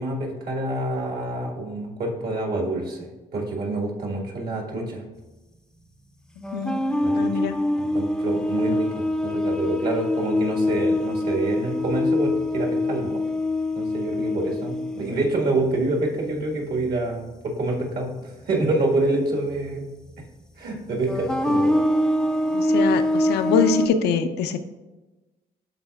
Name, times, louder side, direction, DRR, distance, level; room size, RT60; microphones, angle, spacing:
voice 1, 0.0-5.0 7.0-7.3 7.8-13.2 13.7-19.9 20.6-21.7, right 2 dB, 65° right, 0 dB, 1.6 m, -27 dB
sound 1, 6.4-16.4 16.7-16.9 18.5-18.7 19.7-19.8 21.1-23.9, left 1 dB, 5° left, 0.5 m, -24 dB
voice 2, 6.5-6.9 7.2-7.6 22.5-24.6, left 6 dB, 75° left, 8 dB, 0.5 m, -24 dB
11.5 x 3.9 x 2.3 m, 1.2 s
supercardioid pair, 65°, 17 cm